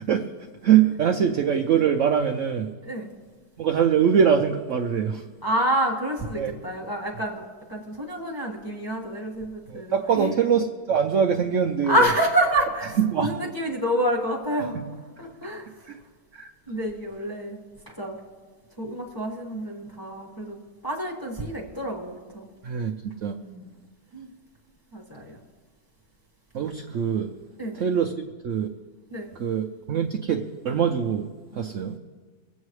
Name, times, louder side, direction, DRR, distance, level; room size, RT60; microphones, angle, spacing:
voice 1, 0.6-2.7 3.6-5.2 6.4-6.5 9.7-12.0 13.1-13.4 14.7-14.8 16.3-16.5 22.6-22.9 23.2-23.4 26.5-27.3 27.8-28.1 28.4-28.7 29.4-31.3 31.5-32.0, right 8 dB, 65° right, 5 dB, 0.8 m, -23 dB
voice 2, 5.4-10.3 11.9-15.7 16.7-17.6 17.8-18.2 18.8-22.5 23.4-23.7 24.1-24.3 24.9-25.4 27.6-27.8 29.1-29.3, right 1 dB, 10° left, -2 dB, 1.5 m, -28 dB
24.5 x 8.2 x 3.2 m, 1.4 s
omnidirectional pair, 1.8 m